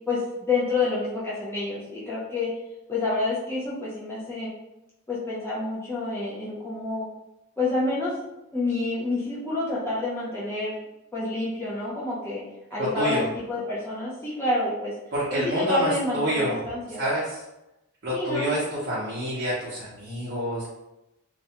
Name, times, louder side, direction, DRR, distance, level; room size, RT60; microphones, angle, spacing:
voice 1, 0.1-2.5 2.9-4.5 5.1-7.1 7.6-8.1 8.5-10.7 11.1-12.4 12.7-14.9 15.3-17.0 18.1-18.5, left 2 dB, 10° left, -8 dB, 0.5 m, -28 dB
voice 2, 12.8-13.2 15.1-16.6 17.0-17.4 18.0-20.7, equal, 50° right, -8 dB, 0.7 m, -27 dB
2.4 x 2.1 x 2.8 m, 0.94 s
head